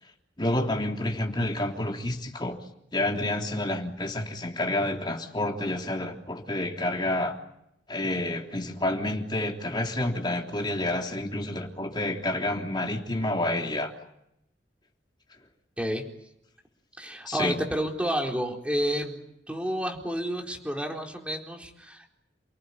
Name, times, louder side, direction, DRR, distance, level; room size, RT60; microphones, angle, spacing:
voice 1, 0.4-2.6 2.9-7.4 7.9-13.9 17.3-17.6, left 1 dB, 25° left, 2 dB, 3.3 m, -29 dB
voice 2, 17.0-22.1, equal, 5° right, 1 dB, 4.1 m, -30 dB
29.5 x 18.5 x 9.9 m, 0.80 s
head